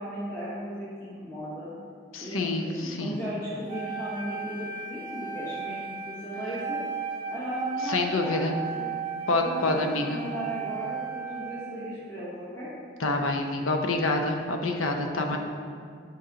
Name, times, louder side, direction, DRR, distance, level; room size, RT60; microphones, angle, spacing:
voice 1, 0.0-1.7 2.2-6.8 7.3-8.9 9.4-12.7 15.1-15.4, equal, 15° left, -11 dB, 1.1 m, -36 dB
voice 2, 2.1-3.2 7.9-8.5 9.3-10.2 13.0-15.4, left 2 dB, 85° left, 4 dB, 0.7 m, -27 dB
Wind instrument woodwind instrument, 3.7-11.9, right 5 dB, 20° right, 0.9 m, -35 dB
6.5 x 5.3 x 4.0 m, 2.2 s
head